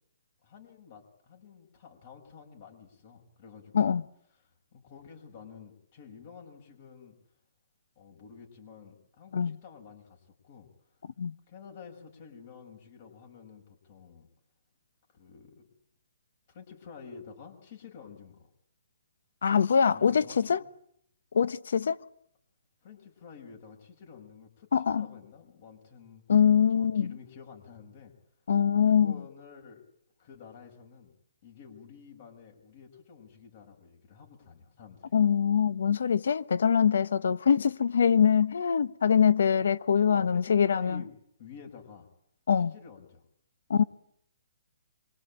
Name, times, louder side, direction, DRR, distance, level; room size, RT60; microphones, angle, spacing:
voice 1, 0.4-3.9 4.4-7.1 7.9-10.7 11.5-14.3 15.1-15.7 16.5-18.5 19.9-20.6 22.8-26.2 26.7-28.1 28.9-29.8 30.2-31.1 31.4-35.1 40.1-41.1 41.4-42.1 42.6-43.2 43.7-43.9, left 6 dB, 45° left, 6.9 m, -50 dB
voice 2, 19.4-20.6 21.3-22.0 24.7-25.1 26.3-27.1 28.5-29.2 35.1-41.0 42.5-42.7 43.7-43.8, left 7 dB, 70° left, 1.2 m, -23 dB
26.5 x 24.0 x 9.1 m
hypercardioid pair, 155°, 0 cm